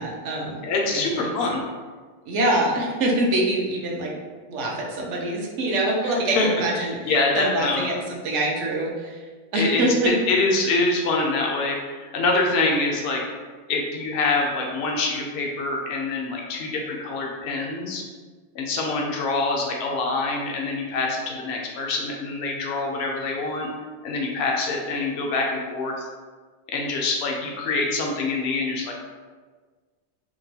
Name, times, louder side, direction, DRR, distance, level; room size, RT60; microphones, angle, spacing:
voice 1, 0.0-0.6 0.9-1.3 2.3-4.1 4.5-9.2 9.5-10.1, right 1 dB, 70° right, -2 dB, 0.9 m, -25 dB
voice 2, 0.6-1.6 6.0-6.5 6.8-7.9 9.5-13.2 13.7-18.0 18.5-23.7 24.0-26.1 26.7-28.9, left 3 dB, 65° left, 0 dB, 0.7 m, -25 dB
2.9 x 2.1 x 2.7 m, 1.4 s
omnidirectional pair, 1.3 m